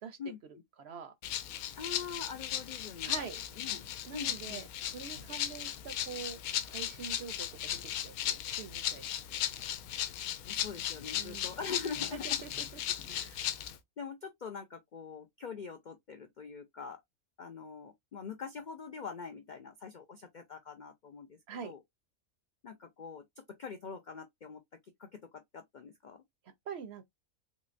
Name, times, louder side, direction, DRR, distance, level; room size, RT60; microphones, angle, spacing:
voice 1, 0.2-0.6 1.8-3.3 3.6-4.7 10.5-12.4 13.3-13.6 14.0-17.0 17.4-21.8 22.6-26.2, left 5 dB, 70° left, 0.4 m, -44 dB
voice 2, 0.8-1.1 3.0-3.4 4.0-4.6 4.9-9.4 11.1-11.5 12.1-12.8 13.1-13.5 21.5-21.7 26.7-27.0, right 7 dB, 60° right, 0.7 m, -45 dB
Rattle (instrument), 1.2-13.8, left 11 dB, 85° left, 1.0 m, -37 dB
3.7 x 3.1 x 2.5 m
omnidirectional pair, 1.5 m